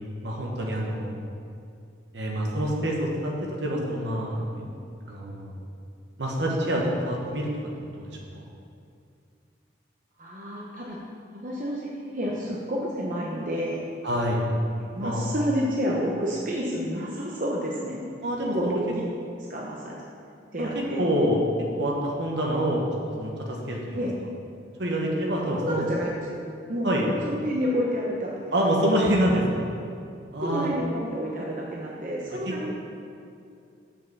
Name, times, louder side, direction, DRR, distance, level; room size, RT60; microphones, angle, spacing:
voice 1, 0.2-1.2 2.1-4.7 5.1-5.5 6.2-7.5 7.8-8.5 14.0-14.5 15.0-15.3 18.2-18.8 20.6-24.1 24.8-25.8 26.8-27.1 28.5-29.6 30.3-30.7 32.5-32.8, equal, 65° right, -2 dB, 1.4 m, -26 dB
voice 2, 10.2-11.0 11.4-13.8 14.8-18.1 18.5-18.8 19.4-20.0 20.5-21.0 23.9-24.1 25.5-26.4 26.7-27.0 27.3-28.5 30.4-32.7, equal, 45° right, -4 dB, 0.9 m, -29 dB
7.2 x 5.5 x 7.1 m, 2.5 s
head